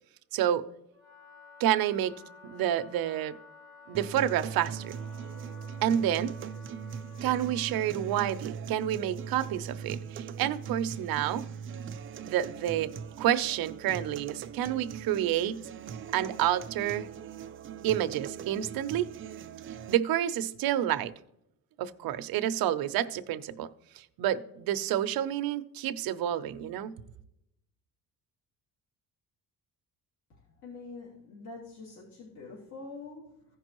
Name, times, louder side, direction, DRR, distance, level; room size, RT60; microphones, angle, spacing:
voice 1, 0.3-0.6 1.6-2.1 2.4-3.3 3.9-4.9 5.8-6.3 7.2-11.4 12.2-12.9 13.2-15.6 16.1-17.1 17.8-19.1 19.9-21.1 21.8-23.7 24.0-26.9, right 11 dB, 70° right, 0.7 m, -29 dB
Wind instrument woodwind instrument, 0.9-7.9, left 4 dB, 25° left, 2.9 m, -53 dB
sound 1, 3.9-20.0, right 7 dB, 35° right, 0.4 m, -40 dB
voice 2, 30.3-33.5, left 3 dB, 55° left, 2.8 m, -45 dB
16.0 x 5.3 x 3.0 m
cardioid pair, 160°, 37 cm